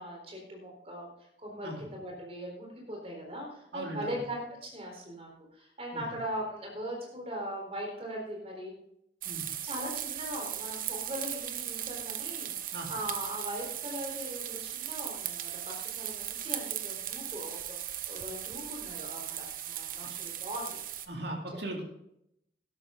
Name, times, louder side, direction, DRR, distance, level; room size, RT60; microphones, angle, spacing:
voice 1, 0.0-8.7 9.6-20.8, equal, 35° right, 0 dB, 4.0 m, -40 dB
voice 2, 3.7-4.2 5.9-6.1 9.2-9.5 12.7-12.9 21.1-21.8, right 1 dB, 70° right, 1 dB, 2.6 m, -38 dB
sound 1, 9.2-21.1, right 11 dB, 50° right, 0.8 m, -38 dB
12.5 x 11.5 x 3.8 m, 0.77 s
head